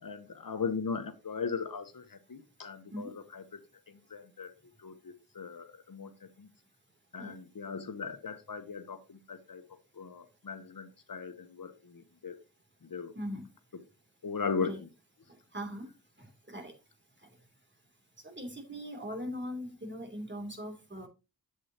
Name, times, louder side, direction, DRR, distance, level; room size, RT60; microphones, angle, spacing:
voice 1, 0.0-3.4 4.1-4.5 4.8-6.1 6.4-6.5 7.1-9.6 10.0-12.4 12.8-13.1 14.2-14.9, left 5 dB, 65° left, 9 dB, 1.2 m, -38 dB
voice 2, 13.1-13.5 14.6-14.8 15.5-15.9 16.2-16.7 18.2-21.1, equal, 30° right, 3 dB, 3.1 m, -40 dB
8.5 x 7.9 x 3.0 m, 0.29 s
cardioid pair, 55°, 36 cm